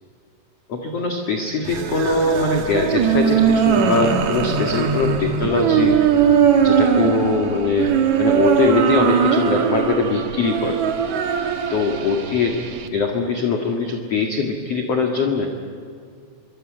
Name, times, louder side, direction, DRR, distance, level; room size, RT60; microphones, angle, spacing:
voice 1, 0.7-6.0 6.6-10.8 11.7-12.6 12.9-15.5, left 4 dB, 50° left, 2 dB, 2.0 m, -22 dB
sound 1, 1.6-12.9, right 7 dB, 70° right, 1.8 m, -20 dB
26.5 x 24.0 x 8.9 m, 2.3 s
omnidirectional pair, 5.7 m